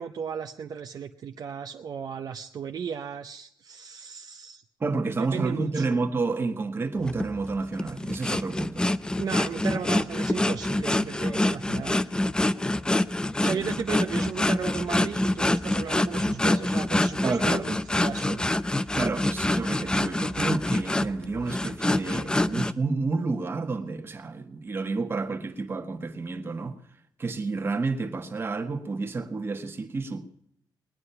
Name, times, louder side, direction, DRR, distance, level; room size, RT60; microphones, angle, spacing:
voice 1, 0.0-4.6 5.2-6.0 9.2-12.0 13.4-18.4, right 7 dB, 55° right, 0.7 m, -35 dB
voice 2, 4.8-8.8 13.4-13.6 17.2-17.6 19.0-26.8 27.2-30.2, right 3 dB, 30° right, 1.4 m, -30 dB
sound 1, 7.0-22.7, left 1 dB, 10° left, 0.5 m, -26 dB
20.5 x 9.8 x 5.6 m
wide cardioid pair, 130°, 8 cm